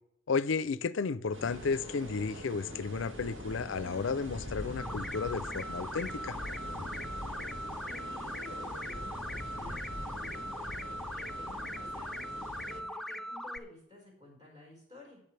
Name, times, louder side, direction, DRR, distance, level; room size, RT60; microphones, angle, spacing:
voice 1, 0.3-6.4, left 5 dB, 80° left, 0.5 m, -33 dB
sound 1, 1.3-12.8, equal, 80° right, 2.3 m, -43 dB
sound 2, 4.8-13.6, equal, ahead, 0.3 m, -40 dB
voice 2, 7.9-15.2, left 1 dB, 25° right, 5.1 m, -53 dB
18.0 x 7.2 x 3.3 m
head